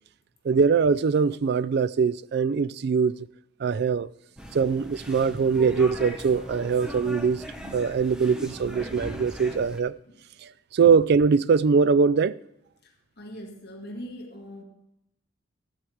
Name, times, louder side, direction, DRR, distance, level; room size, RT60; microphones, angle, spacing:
voice 1, 0.4-3.2 3.6-4.1 4.5-9.9 10.4-12.4, right 5 dB, 55° right, 0.3 m, -22 dB
sound 1, 4.4-9.8, equal, 5° right, 0.9 m, -39 dB
voice 2, 12.8-14.6, equal, 55° left, 1.9 m, -41 dB
14.0 x 5.0 x 7.8 m
head